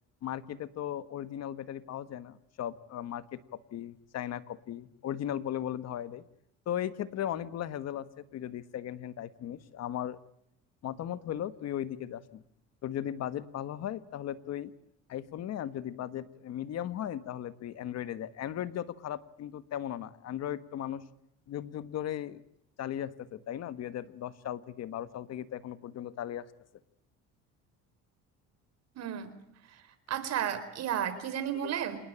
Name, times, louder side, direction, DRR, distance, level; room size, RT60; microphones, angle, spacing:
voice 1, 0.2-3.4 3.7-6.2 6.7-10.2 10.8-12.4 12.8-14.7 15.1-21.0 21.5-22.4 22.8-26.5 31.6-31.8, left 11 dB, 55° left, 13 dB, 1.4 m, -37 dB
voice 2, 29.0-29.3 30.1-32.0, right 9 dB, 60° right, 12 dB, 4.3 m, -32 dB
28.0 x 19.5 x 8.7 m, 0.77 s
cardioid pair, 120°, 30 cm